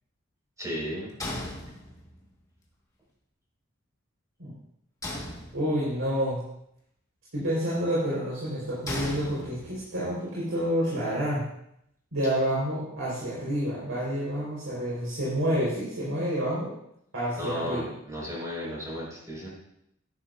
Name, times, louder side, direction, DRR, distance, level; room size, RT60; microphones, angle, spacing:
voice 1, 0.6-1.1 17.4-19.5, equal, 15° right, -4 dB, 5.1 m, -34 dB
sound 1, 1.2-2.3 5.0-6.0 8.9-10.0, left 1 dB, 15° left, 1.7 m, -37 dB
voice 2, 5.5-6.4 7.3-11.4 12.1-16.7 17.1-17.8, equal, 75° right, -8 dB, 4.6 m, -28 dB
14.0 x 11.0 x 2.6 m, 0.74 s
head